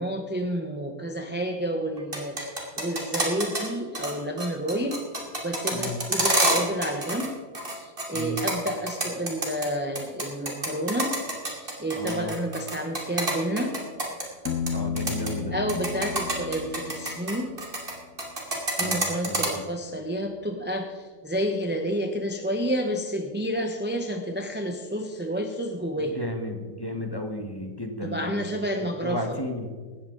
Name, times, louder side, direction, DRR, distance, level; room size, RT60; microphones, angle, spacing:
voice 1, 0.0-5.0 5.4-7.3 7.7-11.2 11.5-13.8 15.5-17.5 18.8-26.2 28.0-29.4, equal, 10° right, 3 dB, 0.7 m, -30 dB
sound 1, 2.0-3.7 3.9-4.1 4.4-7.3 7.5-9.7 10.0-14.7 15.0-15.3 15.7-17.9 18.2-19.5, right 1 dB, 30° right, 2.8 m, -27 dB
voice 2, 11.9-12.3 14.7-15.5 18.8-19.6 26.1-28.4 28.8-29.7, equal, 15° left, 4 dB, 1.4 m, -33 dB
Piano, 14.5-18.2, left 6 dB, 65° left, 1.1 m, -34 dB
17.5 x 13.5 x 4.0 m, 1.5 s
omnidirectional pair, 1.9 m